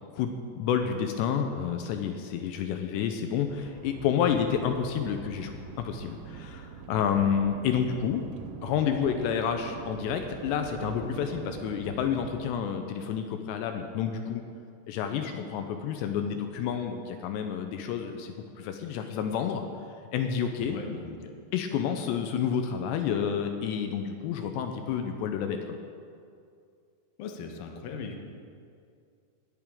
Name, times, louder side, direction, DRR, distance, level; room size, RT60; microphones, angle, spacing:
voice 1, 0.1-8.2 8.6-14.4 14.9-19.6 20.1-20.8 21.5-25.8, left 8 dB, 85° left, 6 dB, 2.8 m, -29 dB
sound 1, 3.5-12.4, right 7 dB, 90° right, 2.0 m, -43 dB
voice 2, 20.6-21.3 27.2-28.2, left 5 dB, 70° left, 3 dB, 2.5 m, -39 dB
19.0 x 11.0 x 3.7 m, 2.3 s
omnidirectional pair, 5.0 m